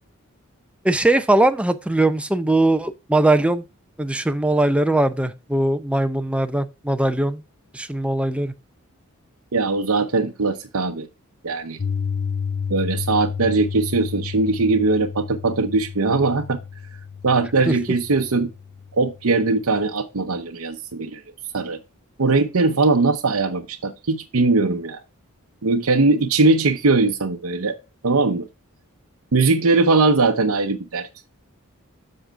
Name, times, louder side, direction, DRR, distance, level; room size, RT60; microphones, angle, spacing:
voice 1, 0.8-3.6 4.0-7.4 7.7-8.5 17.7-17.8, right 2 dB, 5° right, 0.6 m, -20 dB
voice 2, 9.5-11.1 11.4-11.8 12.7-16.6 17.2-18.5 18.9-21.2 21.5-21.8 22.2-25.0 25.6-27.8 28.0-28.5 29.3-31.1, right 3 dB, 75° right, 0.8 m, -20 dB
Piano, 11.8-19.9, left 6 dB, 45° left, 0.6 m, -31 dB
7.7 x 6.4 x 3.5 m
head